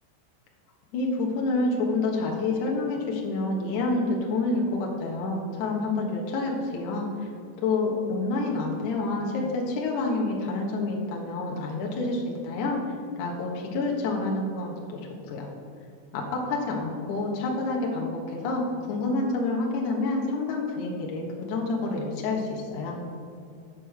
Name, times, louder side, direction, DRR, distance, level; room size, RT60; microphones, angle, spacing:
voice 1, 0.9-7.1 7.6-12.8 13.2-15.0 15.3-15.5 16.1-18.6 18.9-23.0, left 3 dB, 75° left, -1 dB, 1.8 m, -28 dB
9.1 x 5.4 x 6.5 m, 2.4 s
omnidirectional pair, 5.5 m